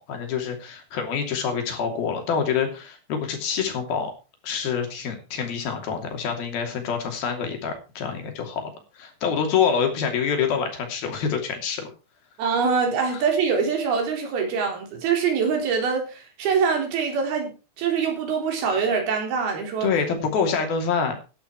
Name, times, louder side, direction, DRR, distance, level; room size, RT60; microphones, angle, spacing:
voice 1, 0.1-4.1 4.4-8.6 9.0-11.9 13.1-13.2 19.8-21.1, left 6 dB, 55° left, 4 dB, 4.4 m, -26 dB
voice 2, 12.4-17.5 17.8-19.9, right 6 dB, 55° right, 2 dB, 5.5 m, -24 dB
14.5 x 10.5 x 4.7 m, 0.32 s
omnidirectional pair, 5.6 m